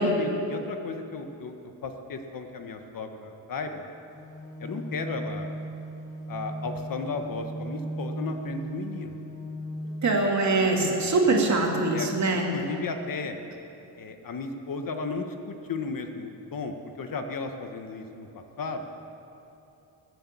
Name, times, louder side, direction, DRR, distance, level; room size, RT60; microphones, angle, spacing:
voice 1, 0.0-3.9 4.6-5.5 6.3-9.2 11.9-13.3 14.0-18.8, left 4 dB, 50° left, 6 dB, 1.3 m, -35 dB
sound 1, 4.1-10.1, right 1 dB, 10° left, 3.1 m, -37 dB
voice 2, 10.0-12.5, right 2 dB, 40° right, 0 dB, 2.7 m, -23 dB
20.0 x 8.3 x 8.5 m, 2.8 s
cardioid pair, 125°, 42 cm